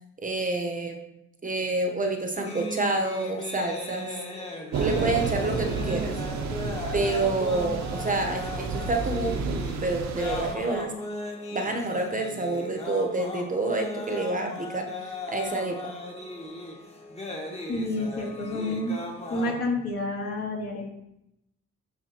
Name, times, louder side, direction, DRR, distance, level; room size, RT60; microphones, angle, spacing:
voice 1, 0.2-1.0 1.4-4.2 4.7-6.1 6.9-10.9 11.5-14.9 15.3-15.8, right 2 dB, 25° right, 3 dB, 0.9 m, -28 dB
sound 1, 2.4-19.6, left 2 dB, 20° left, 1.5 m, -37 dB
Thunder / Rain, 4.7-10.5, right 4 dB, 65° right, 0.8 m, -31 dB
voice 2, 17.7-19.0 19.3-20.9, left 2 dB, 55° left, -3 dB, 2.6 m, -29 dB
11.0 x 3.9 x 2.9 m, 0.82 s
cardioid pair, 90°, 30 cm